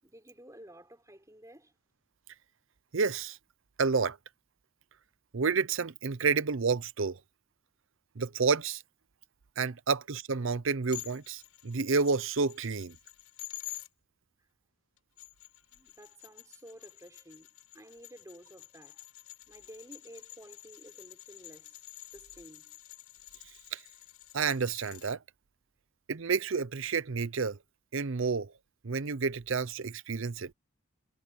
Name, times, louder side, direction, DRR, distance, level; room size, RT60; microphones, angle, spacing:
voice 1, 0.0-1.7 14.4-14.5 15.7-17.5 17.7-19.0 19.5-22.8, right 1 dB, 15° right, 6.1 m, -53 dB
voice 2, 2.9-3.4 3.8-4.2 5.3-7.2 8.2-8.8 9.6-13.0 23.7-23.8 24.3-25.2 26.1-27.6 27.9-28.5 28.8-30.5, right 5 dB, 65° right, 0.7 m, -30 dB
sound 1, 10.9-13.9 15.0-25.2, left 17 dB, 90° left, 7.6 m, -49 dB
head